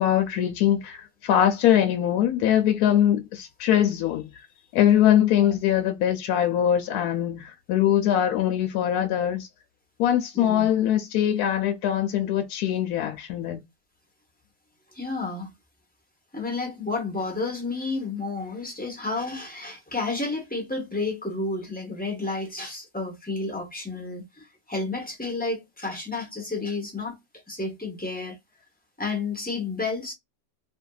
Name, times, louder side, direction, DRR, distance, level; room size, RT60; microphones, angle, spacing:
voice 1, 0.0-4.3 4.7-9.5 10.0-13.6, left 10 dB, 70° left, 1.0 m, -22 dB
voice 2, 10.3-10.7 14.9-15.5 16.3-27.2 27.5-28.4 29.0-30.1, left 3 dB, 10° left, 0.4 m, -31 dB
2.7 x 2.6 x 2.3 m
omnidirectional pair, 1.9 m